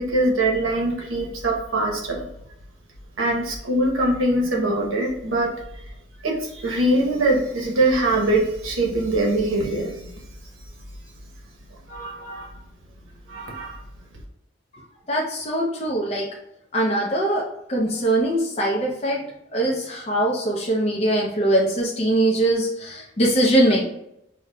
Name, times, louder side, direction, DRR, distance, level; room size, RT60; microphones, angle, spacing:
voice 1, 0.0-2.3 3.2-5.6 6.2-10.1 11.9-12.5 13.3-13.8, right 1 dB, 85° right, -1 dB, 0.9 m, -23 dB
voice 2, 15.1-16.3 16.7-19.2 19.5-23.8, right 1 dB, 30° left, -3 dB, 0.5 m, -22 dB
5.0 x 2.1 x 2.2 m, 0.81 s
head